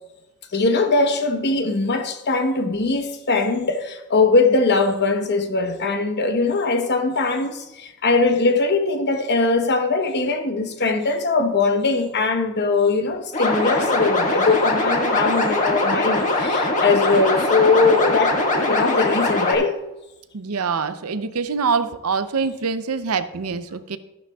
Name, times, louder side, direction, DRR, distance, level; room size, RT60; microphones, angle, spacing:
voice 1, 0.5-19.8, left 3 dB, 50° left, 1.0 m, -21 dB
sound 1, 13.3-19.6, left 2 dB, 35° left, 1.8 m, -21 dB
voice 2, 20.3-24.0, right 5 dB, 80° right, 0.7 m, -24 dB
13.0 x 11.5 x 2.4 m
head